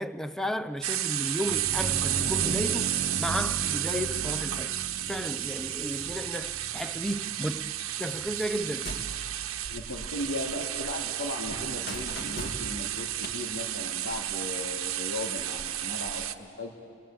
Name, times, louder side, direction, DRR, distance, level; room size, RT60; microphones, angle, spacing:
voice 1, 0.0-4.8 5.1-7.7 8.0-9.0, equal, ahead, 0.6 m, -33 dB
sound 1, 0.8-16.3, right 12 dB, 90° right, 1.0 m, -32 dB
sound 2, 1.4-12.9, right 2 dB, 35° right, 0.7 m, -40 dB
sound 3, 8.6-10.4 10.6-13.3, equal, 50° left, 2.5 m, -41 dB
voice 2, 9.7-16.7, left 2 dB, 90° left, 2.6 m, -37 dB
28.0 x 22.0 x 8.8 m
head